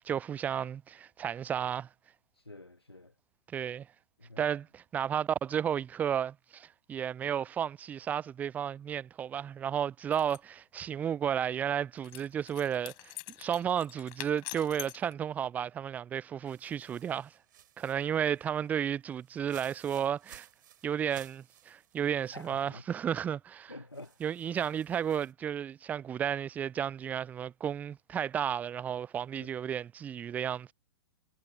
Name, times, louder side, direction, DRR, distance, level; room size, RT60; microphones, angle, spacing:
voice 1, 0.0-1.9 3.5-3.9 4.4-13.1 13.4-17.3 17.8-20.5 20.8-23.8 24.2-30.7, right 9 dB, 10° right, 0.3 m, -33 dB
voice 2, 2.4-3.1 4.2-4.4 22.3-22.8 23.7-24.1 29.4-29.5, left 2 dB, 85° left, 1.4 m, -48 dB
sound 1, 10.1-10.4 12.0-15.1, left 26 dB, 35° left, 4.0 m, -45 dB
sound 2, 16.5-22.7 23.1-23.2 23.9-25.3, right 11 dB, 55° right, 3.4 m, -58 dB
figure-of-eight pair, 105°, 13 cm